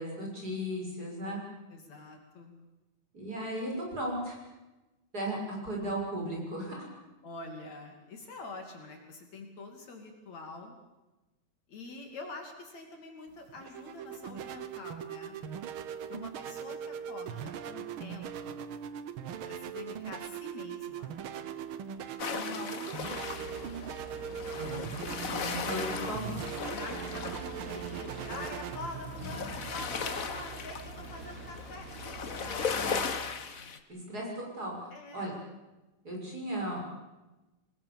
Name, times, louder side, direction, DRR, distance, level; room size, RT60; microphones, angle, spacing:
voice 1, 0.0-1.4 3.1-4.4 5.1-6.8 24.5-24.8 25.5-26.4 33.9-34.7 35.1-35.3 36.0-36.8, equal, 25° right, -1 dB, 7.0 m, -36 dB
voice 2, 1.7-2.5 7.2-10.8 11.7-15.4 16.1-18.7 19.5-21.2 22.3-23.8 25.2-26.3 26.7-31.9 32.4-33.1 34.9-35.5, left 3 dB, 60° left, 3 dB, 3.8 m, -46 dB
sound 1, 13.3-31.5, right 8 dB, 75° right, 1.2 m, -40 dB
sound 2, 22.2-33.8, left 5 dB, 75° left, 0.7 m, -38 dB
sound 3, 23.0-33.1, right 2 dB, 55° right, 5.9 m, -45 dB
26.5 x 20.5 x 7.2 m, 1.1 s
omnidirectional pair, 3.7 m